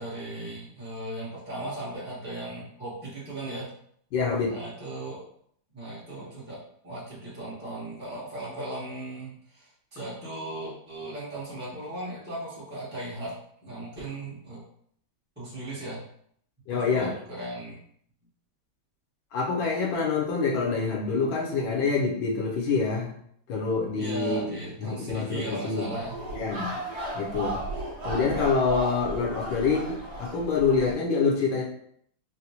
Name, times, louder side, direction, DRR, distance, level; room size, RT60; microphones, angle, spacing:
voice 1, 0.0-3.7 4.5-5.2 5.7-6.6 6.8-13.3 13.6-14.6 15.4-16.0 16.7-17.8 24.0-26.2, right 1 dB, 10° right, -10 dB, 0.5 m, -37 dB
voice 2, 4.1-4.5 16.7-17.1 19.3-23.1 23.5-25.9 26.3-26.8 27.1-27.6 28.0-31.6, left 4 dB, 80° left, -2 dB, 1.5 m, -26 dB
sound 1, 25.9-30.9, right 1 dB, 50° right, 0.8 m, -35 dB
4.1 x 2.2 x 2.8 m, 0.66 s
omnidirectional pair, 2.2 m